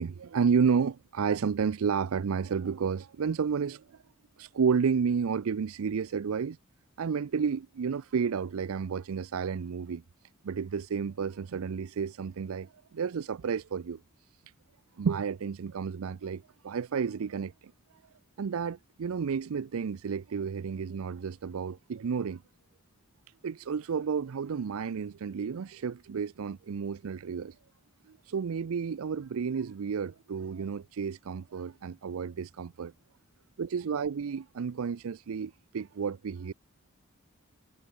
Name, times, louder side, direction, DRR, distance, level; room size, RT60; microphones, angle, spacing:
voice 1, 0.0-4.0 4.4-6.6 7.0-10.0 10.4-14.0 15.0-17.7 18.4-22.4 23.4-27.6 28.1-32.9 33.6-36.5, right 6 dB, 85° right, 0.4 m, -31 dB
head